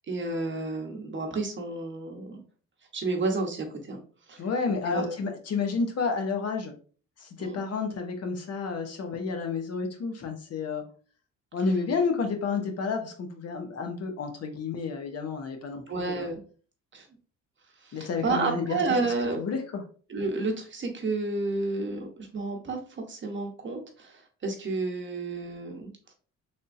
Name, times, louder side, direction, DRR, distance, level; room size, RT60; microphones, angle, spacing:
voice 1, 0.1-2.4 2.9-4.0 4.3-4.4 4.9-5.1 7.4-7.6 15.9-16.4 16.9-17.1 17.8-19.4 20.1-25.9, right 3 dB, 40° right, 3 dB, 0.9 m, -31 dB
voice 2, 4.4-6.7 7.2-10.8 11.5-16.3 17.9-19.0 19.3-19.8, left 4 dB, 55° left, 5 dB, 0.8 m, -30 dB
3.4 x 2.7 x 2.5 m, 0.40 s
cardioid pair, 90°, 30 cm